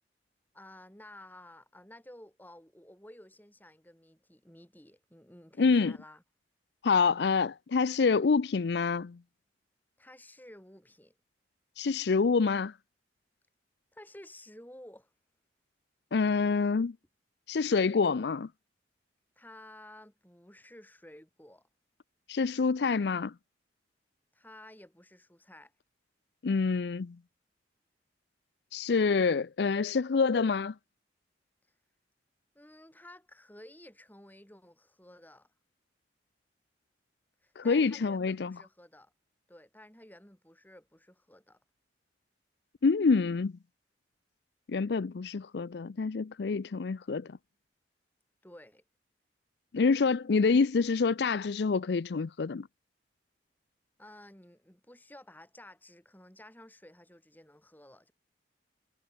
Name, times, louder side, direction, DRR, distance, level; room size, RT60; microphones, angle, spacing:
voice 1, 0.5-6.2 10.0-11.1 13.9-15.1 19.4-21.7 24.3-25.7 32.6-35.5 37.4-39.1 39.5-41.6 48.4-48.8 54.0-58.1, left 1 dB, 10° left, 5.4 m, -53 dB
voice 2, 5.6-5.9 6.8-9.2 11.8-12.7 16.1-16.9 17.5-18.5 22.3-23.3 26.4-27.2 28.7-30.7 37.6-38.5 42.8-43.5 44.7-47.3 49.7-52.7, left 4 dB, 65° left, 0.5 m, -27 dB
head